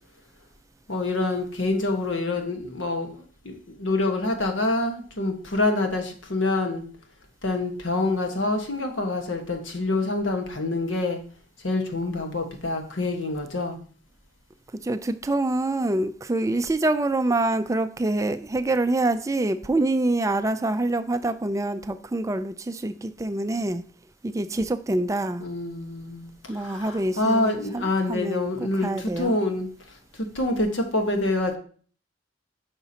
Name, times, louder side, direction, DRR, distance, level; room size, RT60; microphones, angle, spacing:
voice 1, 0.9-6.8 7.4-11.2 11.6-13.8 25.4-26.3 26.6-29.7 30.2-31.6, left 2 dB, 90° left, 1.4 m, -26 dB
voice 2, 14.7-23.8 24.2-25.5 26.5-29.4, right 2 dB, 15° right, 0.4 m, -26 dB
9.6 x 5.9 x 2.9 m
head